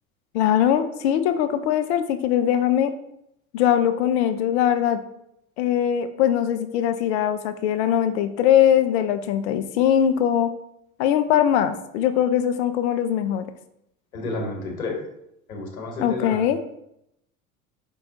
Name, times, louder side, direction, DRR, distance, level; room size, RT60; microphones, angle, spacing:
voice 1, 0.3-2.9 3.5-5.0 5.6-10.5 11.0-13.4 16.0-16.6, left 10 dB, 50° left, 9 dB, 0.4 m, -21 dB
voice 2, 14.1-15.0 15.5-16.4, left 2 dB, 75° left, 1 dB, 1.1 m, -30 dB
4.5 x 2.3 x 3.9 m, 0.79 s
figure-of-eight pair, 70°, 43 cm